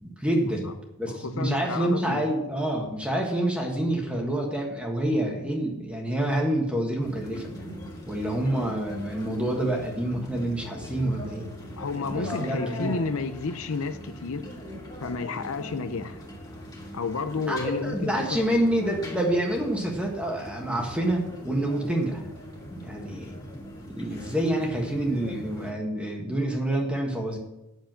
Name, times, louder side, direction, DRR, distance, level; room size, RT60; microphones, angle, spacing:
voice 1, 0.0-7.5 8.1-11.5 12.1-13.0 17.5-22.2 22.7-23.3 23.9-27.4, right 1 dB, 5° right, 0 dB, 1.5 m, -27 dB
voice 2, 1.1-2.2 11.8-14.5 15.0-16.2 16.9-18.4, left 4 dB, 65° left, 9 dB, 0.6 m, -31 dB
sound 1, 7.0-25.7, equal, 20° left, 2.1 m, -40 dB
8.0 x 6.9 x 7.5 m, 0.93 s
head